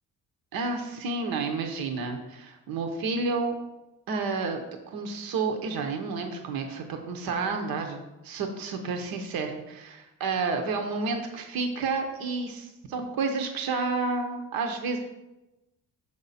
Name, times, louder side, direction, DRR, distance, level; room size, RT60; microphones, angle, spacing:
voice 1, 0.5-3.5 4.1-4.6 4.9-15.0, right 4 dB, 85° right, 4 dB, 0.8 m, -30 dB
6.8 x 4.9 x 4.1 m, 1.0 s
cardioid pair, 95°, 35 cm